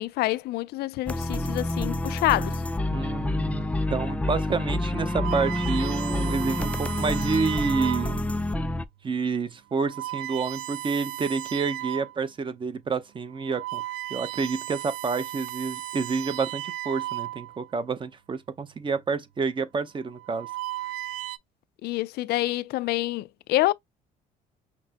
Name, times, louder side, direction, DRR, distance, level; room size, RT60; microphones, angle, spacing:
voice 1, 0.0-2.6 21.8-23.7, left 17 dB, 70° left, 0.4 m, -27 dB
sound 1, 1.1-8.8, left 1 dB, 10° left, 0.4 m, -28 dB
voice 2, 2.9-8.3 9.0-13.8 14.1-20.5, right 4 dB, 30° right, 0.8 m, -29 dB
sound 2, 4.9-8.3 9.0-9.2 9.7-12.2 12.7-12.8 13.3-17.7 18.8-19.1 20.0-21.4, right 15 dB, 90° right, 0.4 m, -36 dB
5.9 x 2.0 x 2.9 m
cardioid pair, 110°, 17 cm